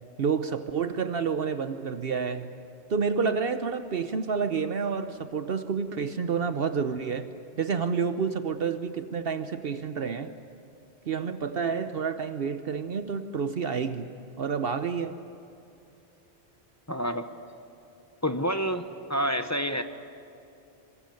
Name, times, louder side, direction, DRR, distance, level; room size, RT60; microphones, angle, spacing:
voice 1, 0.2-2.5 2.9-7.3 7.6-10.3 11.1-14.1 14.4-15.2, right 6 dB, 65° right, 10 dB, 1.0 m, -29 dB
voice 2, 16.9-17.3 18.2-19.8, equal, 15° left, 8 dB, 1.0 m, -28 dB
26.5 x 26.0 x 7.8 m, 2.8 s
omnidirectional pair, 1.1 m